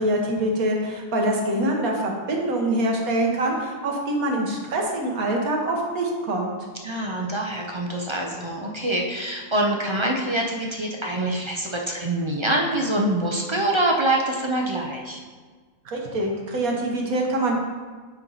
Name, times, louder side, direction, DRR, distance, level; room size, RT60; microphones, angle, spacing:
voice 1, 0.0-6.5 15.8-17.5, right 1 dB, 85° right, 0 dB, 1.7 m, -24 dB
voice 2, 6.8-15.2, right 1 dB, 35° right, 0 dB, 0.5 m, -25 dB
9.6 x 4.5 x 4.0 m, 1.5 s
omnidirectional pair, 1.5 m